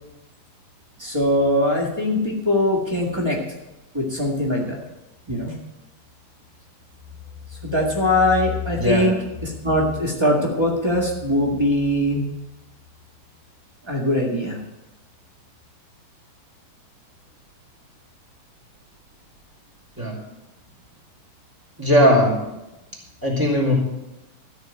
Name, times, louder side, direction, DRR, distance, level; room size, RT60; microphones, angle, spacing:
voice 1, 1.0-3.4 3.9-4.8 5.3-5.6 7.5-9.1 9.4-12.3 13.8-14.6, left 1 dB, 35° right, -2 dB, 0.4 m, -21 dB
voice 2, 8.7-9.1 20.0-20.1 21.8-22.3 23.2-23.7, equal, 5° right, -2 dB, 2.8 m, -18 dB
14.0 x 6.4 x 8.9 m, 0.97 s
omnidirectional pair, 4.2 m